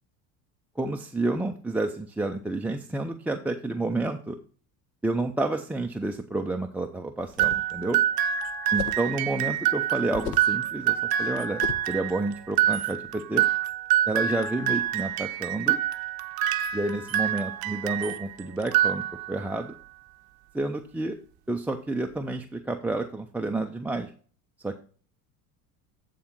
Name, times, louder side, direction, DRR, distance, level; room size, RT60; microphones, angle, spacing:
voice 1, 0.8-4.4 5.0-8.0 8.7-13.4 14.1-15.8 16.7-19.7 20.5-21.2 21.5-24.1 24.6-24.8, right 2 dB, 5° right, 2 dB, 0.4 m, -30 dB
sound 1, 7.2-7.7 8.8-9.1 10.1-10.6 11.6-12.0, left 10 dB, 55° left, 0.8 m, -35 dB
Pop Goes The Weasel Music Box, 7.4-18.3 18.6-19.5, right 11 dB, 50° right, 0.6 m, -26 dB
8.6 x 3.8 x 5.8 m, 0.42 s
hypercardioid pair, 80°, 47 cm